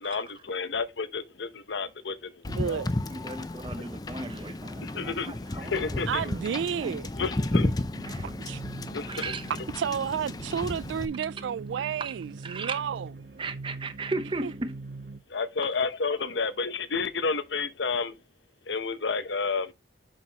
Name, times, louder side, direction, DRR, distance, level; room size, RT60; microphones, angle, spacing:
voice 1, 0.0-2.3 2.7-2.8 4.8-6.3 7.2-7.7 8.9-9.2 15.3-18.1 18.7-19.7, left 4 dB, 80° left, 0.8 m, -31 dB
Wind / Boat Water vehicle, 2.4-11.1, left 2 dB, 20° left, 0.4 m, -33 dB
voice 2, 2.5-2.9 6.1-7.1 8.4-8.6 9.8-13.1 14.4-14.5, right 8 dB, 85° right, 0.3 m, -31 dB
voice 3, 3.1-6.4 6.8-7.5 8.0-8.2 9.0-9.4 12.0-12.1 12.4-12.8 13.4-14.7 15.6-15.7, right 3 dB, 25° right, 0.8 m, -36 dB
sound 1, 7.9-15.2, right 3 dB, 60° right, 0.7 m, -43 dB
7.2 x 6.7 x 2.9 m
head